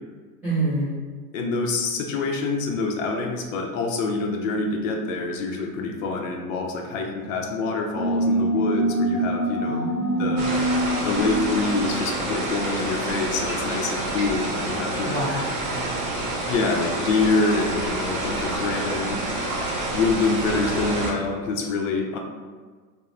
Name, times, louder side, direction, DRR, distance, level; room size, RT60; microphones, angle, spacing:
voice 1, 0.4-0.9 9.6-10.6 15.0-15.9, right 1 dB, 5° right, -17 dB, 0.3 m, -28 dB
voice 2, 1.3-9.8 10.2-10.6 11.0-15.3 16.5-19.2 19.9-22.2, left 3 dB, 55° left, 2 dB, 0.5 m, -26 dB
sound 1, 7.9-13.1, right 1 dB, 15° left, 0.9 m, -25 dB
sound 2, 10.4-21.1, right 2 dB, 50° right, 0.7 m, -28 dB
2.9 x 2.0 x 2.4 m, 1.5 s
hypercardioid pair, 125°, 47 cm